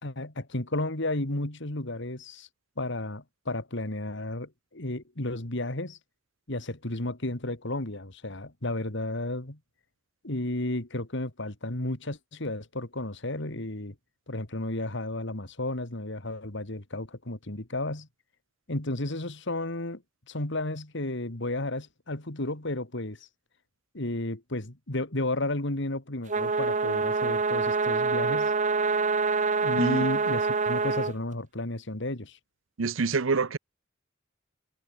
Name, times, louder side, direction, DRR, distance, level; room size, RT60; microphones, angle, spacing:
voice 1, 0.0-2.5 2.8-6.0 6.5-9.6 10.2-13.9 14.3-18.1 18.7-20.0 20.3-23.2 23.9-28.5 29.6-32.4, left 2 dB, 65° left, 2.9 m, -33 dB
sound 1, 26.3-31.1, right 4 dB, 40° right, 1.3 m, -26 dB
voice 2, 32.8-33.6, right 4 dB, 90° right, 0.8 m, -26 dB
head